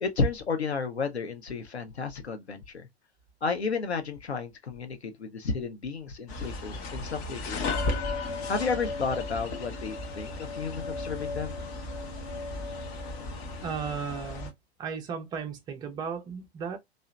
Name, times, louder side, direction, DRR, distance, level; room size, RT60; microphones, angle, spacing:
voice 1, 0.0-2.9 3.4-7.9 8.5-11.6, left 4 dB, 80° left, 0.7 m, -32 dB
sound 1, 6.3-14.5, left 3 dB, 35° left, 0.7 m, -35 dB
voice 2, 13.6-14.5 14.8-16.8, right 6 dB, 15° right, 0.4 m, -35 dB
2.7 x 2.0 x 2.2 m
figure-of-eight pair, 95°, 32 cm